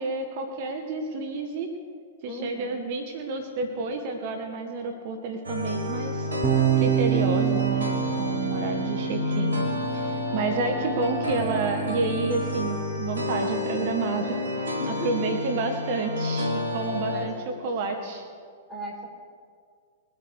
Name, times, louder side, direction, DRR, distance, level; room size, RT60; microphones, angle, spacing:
voice 1, 0.0-1.7 2.2-6.3 6.7-7.9 8.2-9.5 9.9-17.3 17.6-18.2, right 3 dB, 55° right, 4 dB, 1.6 m, -30 dB
voice 2, 2.3-2.8 10.3-10.7 14.8-15.3 17.1-18.1 18.7-19.0, left 1 dB, 5° left, -3 dB, 4.7 m, -38 dB
sound 1, 5.4-17.3, left 1 dB, 85° right, 2.1 m, -30 dB
sound 2, 6.4-12.7, right 9 dB, 25° right, 1.2 m, -28 dB
22.0 x 8.7 x 4.9 m, 2.1 s
hypercardioid pair, 105°, 0 cm